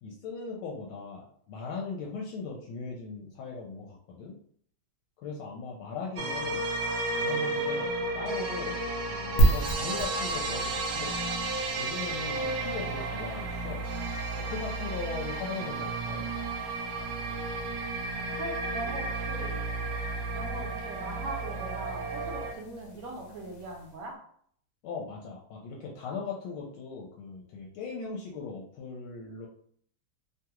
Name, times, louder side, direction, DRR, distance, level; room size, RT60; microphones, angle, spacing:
voice 1, 0.0-4.3 5.2-11.2 11.8-13.8 14.4-16.3 24.8-29.5, left 4 dB, 80° left, -2 dB, 1.4 m, -39 dB
sound 1, 6.2-22.5, right 2 dB, 85° right, 0.9 m, -33 dB
sound 2, 9.4-24.1, right 2 dB, 65° left, 0.8 m, -35 dB
voice 2, 18.2-19.5 20.3-24.1, right 2 dB, 60° right, 0 dB, 0.9 m, -40 dB
3.3 x 2.3 x 2.9 m, 0.62 s
omnidirectional pair, 2.3 m